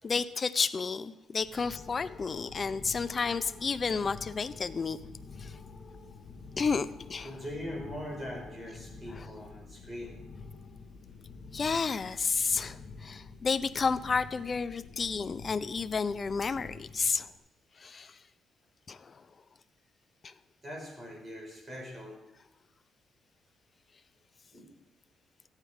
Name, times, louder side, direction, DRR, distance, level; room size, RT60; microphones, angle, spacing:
voice 1, 0.0-5.0 5.4-5.5 6.6-7.3 9.2-9.3 11.5-17.3 17.8-18.2 18.9-19.1 20.2-20.3, left 5 dB, 35° left, 12 dB, 0.5 m, -31 dB
sound 1, 1.4-17.4, left 4 dB, 55° left, 1.4 m, -48 dB
voice 2, 7.2-10.1 16.5-16.6 20.6-22.2 24.5-24.7, equal, 25° right, -1 dB, 4.7 m, -42 dB
14.5 x 9.1 x 4.9 m, 0.93 s
cardioid pair, 90°, 0 cm